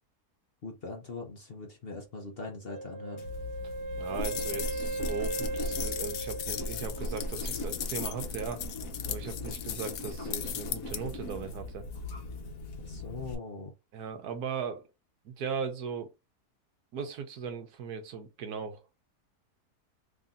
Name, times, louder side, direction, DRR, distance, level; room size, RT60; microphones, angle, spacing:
voice 1, 0.6-3.2 12.8-13.7, left 3 dB, 45° left, 0.9 m, -41 dB
Wind instrument woodwind instrument, 2.7-7.5, right 2 dB, 60° right, 0.7 m, -38 dB
sound 1, 3.2-13.3, left 2 dB, 65° left, 1.3 m, -38 dB
voice 2, 4.0-8.6 9.1-11.9 13.9-14.8 15.2-16.1 16.9-19.0, right 6 dB, 75° right, 1.4 m, -38 dB
sound 2, 4.2-11.0, left 11 dB, 90° left, 1.2 m, -38 dB
3.5 x 2.7 x 3.6 m
omnidirectional pair, 1.7 m